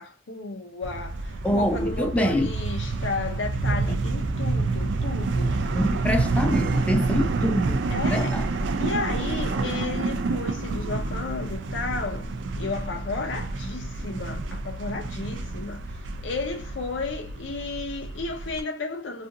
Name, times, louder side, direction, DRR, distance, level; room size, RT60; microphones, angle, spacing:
voice 1, 0.0-5.8 7.9-8.4 8.8-12.3 12.6-19.3, left 3 dB, 75° left, 0.5 m, -33 dB
sound 1, 0.8-18.6, right 3 dB, 75° right, 0.4 m, -28 dB
voice 2, 1.4-2.5 5.7-7.8 8.1-8.5, equal, 5° left, 0.3 m, -25 dB
2.7 x 2.5 x 2.4 m
head